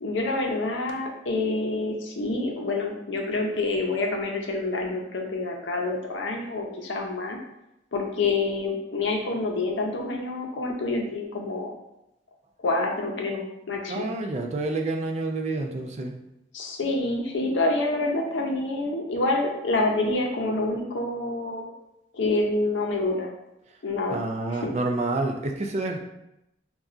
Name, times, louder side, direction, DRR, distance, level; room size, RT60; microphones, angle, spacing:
voice 1, 0.0-7.4 7.9-11.8 12.6-14.1 16.5-21.7 22.1-23.3 23.8-24.2 24.5-24.7, left 2 dB, 80° left, 1 dB, 0.6 m, -27 dB
voice 2, 13.9-16.1 24.1-26.0, right 2 dB, 35° right, 3 dB, 0.3 m, -28 dB
4.1 x 2.3 x 2.4 m, 0.88 s
head